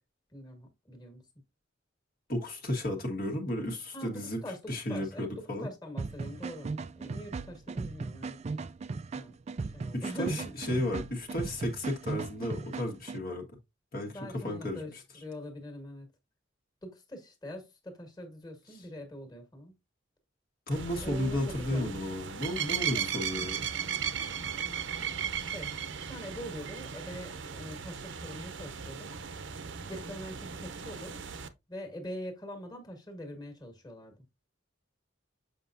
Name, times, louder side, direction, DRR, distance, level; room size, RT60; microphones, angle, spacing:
voice 1, 0.3-1.2 3.9-8.4 9.1-9.3 9.7-10.5 14.1-16.1 16.8-19.7 21.0-22.0 22.9-23.0 24.6-25.7 26.0-29.1 29.9-31.2 31.7-34.2, equal, 20° left, 1.7 m, -43 dB
voice 2, 2.3-4.4 4.7-5.7 9.9-13.4 13.9-15.0 18.7-18.8 20.7-23.6, left 1 dB, 50° left, 1.5 m, -33 dB
sound 1, 6.0-13.2, right 4 dB, 35° right, 0.3 m, -38 dB
sound 2, 20.7-31.5, right 8 dB, 65° right, 0.7 m, -37 dB
7.4 x 5.4 x 2.6 m
head